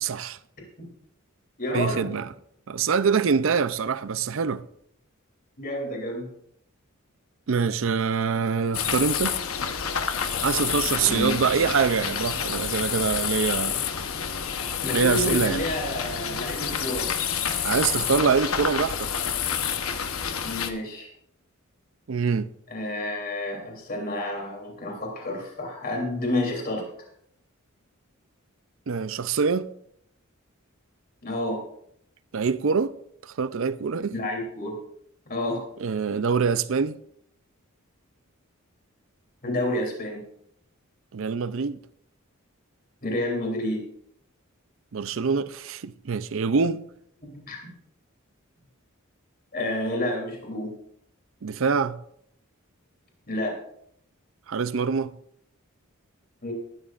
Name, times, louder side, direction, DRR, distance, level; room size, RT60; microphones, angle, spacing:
voice 1, 0.0-0.4 1.7-2.3 2.7-4.6 7.5-9.3 10.4-13.8 14.9-15.6 17.6-19.1 22.1-22.5 28.9-29.7 32.3-32.9 33.2-34.1 35.8-37.0 41.1-41.8 44.9-46.9 51.4-52.0 54.5-55.2, right 5 dB, 65° right, 0.5 m, -25 dB
voice 2, 1.6-2.1 5.6-6.3 11.0-11.4 14.8-17.1 20.4-21.1 22.7-26.8 31.2-31.6 34.1-34.7 35.3-35.6 39.4-40.2 43.0-43.8 47.5-47.6 49.5-50.7 53.3-53.6 56.4-56.5, left 1 dB, 45° left, 3.2 m, -29 dB
sound 1, 8.7-20.7, left 7 dB, 80° left, 1.0 m, -28 dB
18.5 x 12.5 x 2.5 m
head